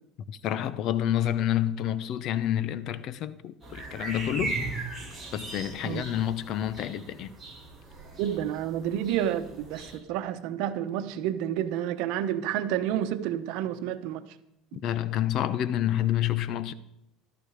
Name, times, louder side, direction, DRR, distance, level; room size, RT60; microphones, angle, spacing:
voice 1, 0.3-4.7 5.3-7.3 14.7-16.7, left 11 dB, 50° left, 0.9 m, -28 dB
sound 1, 3.6-10.0, right 2 dB, 5° right, 7.5 m, -38 dB
voice 2, 8.2-14.2 14.7-14.8, right 11 dB, 70° right, 1.2 m, -30 dB
14.5 x 13.0 x 5.1 m
cardioid pair, 140°, 0 cm